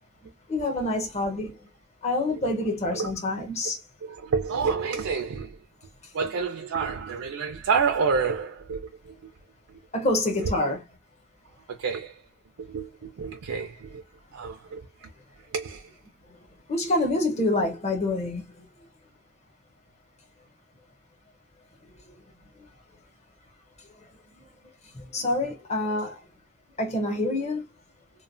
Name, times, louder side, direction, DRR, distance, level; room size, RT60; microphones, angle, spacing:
voice 1, 0.5-1.6 2.0-3.8 6.0-6.1 9.9-10.8 16.2-18.6 21.9-22.2 22.6-22.7 24.3-24.4 24.8-26.3 26.8-27.7, left 2 dB, 30° left, 0.8 m, -27 dB
voice 2, 4.0-5.6 6.1-9.3 10.4-10.5 11.7-12.2 12.6-14.0 14.3-15.1 15.5-15.9, right 5 dB, 75° right, 0.4 m, -29 dB
3.1 x 2.1 x 2.4 m
head